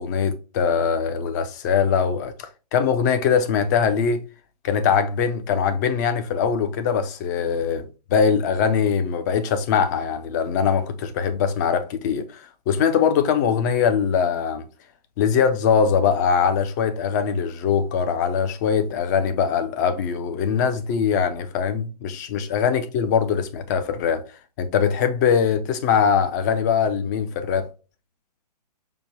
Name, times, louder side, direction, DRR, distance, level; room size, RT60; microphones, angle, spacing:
voice 1, 0.0-4.2 4.6-7.9 8.1-14.7 15.2-24.2 24.6-27.7, left 6 dB, 25° left, 0.4 m, -22 dB
5.0 x 2.1 x 3.1 m
figure-of-eight pair, 125°, 21 cm